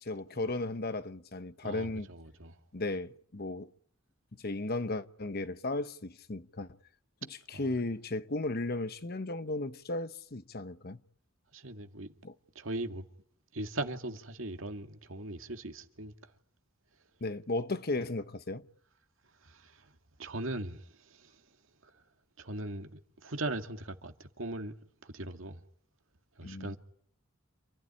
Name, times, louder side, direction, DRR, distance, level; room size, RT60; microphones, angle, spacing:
voice 1, 0.0-2.1 2.7-3.7 4.4-6.8 7.5-11.0 12.2-12.3 17.2-18.6 26.4-26.8, left 2 dB, 50° left, 1.0 m, -35 dB
voice 2, 1.6-2.6 7.5-7.6 11.5-12.1 12.6-13.0 13.5-16.1 19.4-19.8 20.2-21.3 21.8-21.9 22.4-24.7 25.0-25.6 26.4-26.8, right 2 dB, 70° right, 2.2 m, -39 dB
28.0 x 15.5 x 10.0 m
head